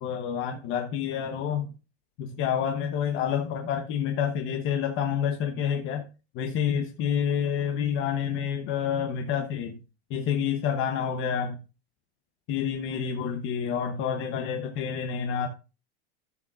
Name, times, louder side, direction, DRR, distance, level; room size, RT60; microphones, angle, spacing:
voice 1, 0.0-1.7 2.2-6.0 6.3-9.8 10.1-11.6 12.5-15.5, left 8 dB, 40° left, 5 dB, 1.1 m, -28 dB
13.5 x 6.5 x 2.5 m, 0.31 s
supercardioid pair, 135°, 32 cm